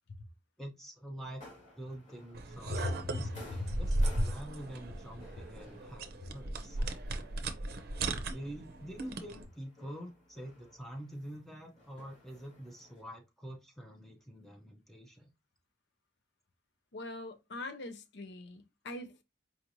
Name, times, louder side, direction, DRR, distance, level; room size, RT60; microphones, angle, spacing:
voice 1, 0.6-1.4 1.8-3.9 4.2-6.8 8.3-15.3, right 1 dB, ahead, 0.6 m, -46 dB
sound 1, 1.2-13.0, left 2 dB, 40° left, 1.8 m, -57 dB
sound 2, 2.3-9.5, right 2 dB, 55° right, 0.6 m, -36 dB
voice 2, 16.9-19.2, left 2 dB, 65° left, 0.7 m, -40 dB
4.8 x 3.0 x 2.6 m
head